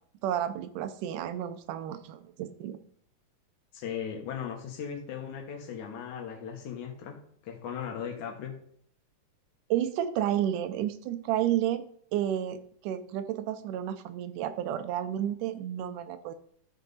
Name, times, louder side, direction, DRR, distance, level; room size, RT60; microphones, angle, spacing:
voice 1, 0.2-2.8 9.7-11.9 12.1-16.3, right 11 dB, 85° right, 10 dB, 2.3 m, -31 dB
voice 2, 3.7-7.2 7.4-8.6, left 8 dB, 70° left, 3 dB, 2.6 m, -37 dB
13.0 x 5.5 x 4.0 m, 0.62 s
omnidirectional pair, 3.6 m